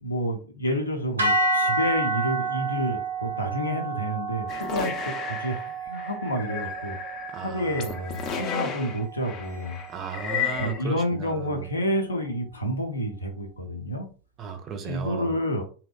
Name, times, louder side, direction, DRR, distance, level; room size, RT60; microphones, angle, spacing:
voice 1, 0.0-7.0 7.4-9.8 10.6-14.1 14.8-15.6, equal, 80° left, 0.6 m, -29 dB
sound 1, 1.2-9.5, right 2 dB, 75° right, 0.6 m, -30 dB
sound 2, 4.5-10.8, left 7 dB, 30° left, 0.5 m, -34 dB
voice 2, 7.3-8.4 9.9-11.7 14.4-15.3, right 7 dB, 30° right, 0.5 m, -36 dB
2.7 x 2.1 x 2.3 m
figure-of-eight pair, 90°, 0 cm